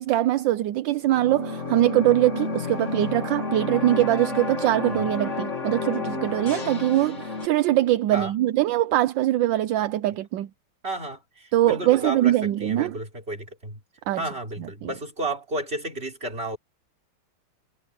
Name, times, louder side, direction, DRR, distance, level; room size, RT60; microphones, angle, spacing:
voice 1, 0.0-10.5 11.5-13.0 14.1-14.2 14.8-14.9, right 14 dB, 75° right, 1.3 m, -22 dB
sound 1, 1.0-7.5, left 3 dB, 40° left, 2.7 m, -31 dB
voice 2, 10.8-13.8 14.2-16.6, right 1 dB, 30° right, 4.5 m, -32 dB
omnidirectional pair, 2.1 m